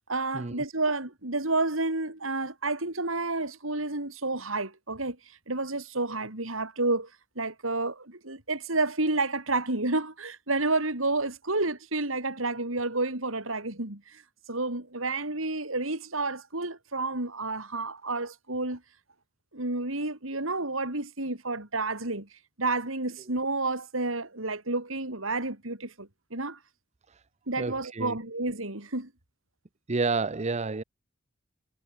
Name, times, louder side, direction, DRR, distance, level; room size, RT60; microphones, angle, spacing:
voice 1, 0.1-5.2 5.5-7.1 7.3-14.2 14.5-18.8 19.5-22.3 22.6-26.6 27.5-29.1, right 2 dB, 80° right, 5.0 m, -30 dB
voice 2, 27.6-28.2 29.9-30.8, right 3 dB, 35° right, 0.7 m, -29 dB
head